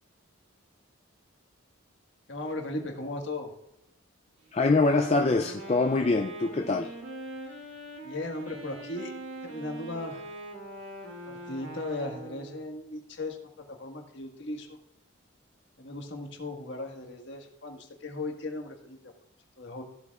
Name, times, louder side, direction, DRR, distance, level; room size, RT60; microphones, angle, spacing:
voice 1, 2.3-3.5 8.0-9.1 9.4-10.2 11.3-14.8 15.8-19.1 19.6-19.8, left 2 dB, 60° left, 2 dB, 1.6 m, -37 dB
voice 2, 4.5-6.9, left 3 dB, 30° left, 4 dB, 0.4 m, -24 dB
Wind instrument woodwind instrument, 4.6-12.6, right 1 dB, 70° right, 2.7 m, -42 dB
15.0 x 7.9 x 2.4 m, 0.82 s
head